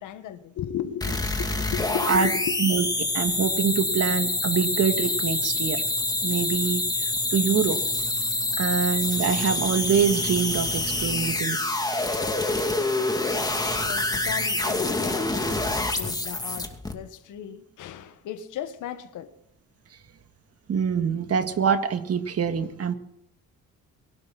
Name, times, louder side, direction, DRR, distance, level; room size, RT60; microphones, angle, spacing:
voice 1, 0.0-2.4 12.6-12.9 13.7-19.3, left 10 dB, 85° left, 9 dB, 1.7 m, -36 dB
sound 1, 1.0-16.9, left 2 dB, 15° left, 2.5 m, -26 dB
voice 2, 2.6-5.8 6.2-7.8 8.6-11.6 20.7-22.9, right 7 dB, 55° right, 8 dB, 2.0 m, -25 dB
23.0 x 12.0 x 4.2 m, 0.75 s
cardioid pair, 90°, 30 cm